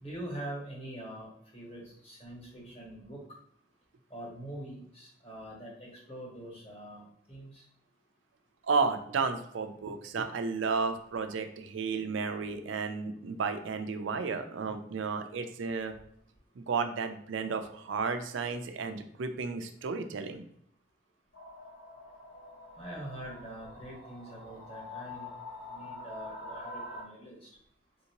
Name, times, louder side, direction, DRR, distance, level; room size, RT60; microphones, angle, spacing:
voice 1, 0.0-3.2 4.1-7.6 22.8-25.3 25.7-27.5, right 1 dB, 30° left, -4 dB, 1.2 m, -44 dB
voice 2, 8.7-15.9 16.6-20.4, right 4 dB, 80° right, 7 dB, 0.4 m, -33 dB
sound 1, 21.3-27.0, left 2 dB, 75° left, 1.0 m, -45 dB
3.5 x 2.7 x 2.9 m, 0.68 s
head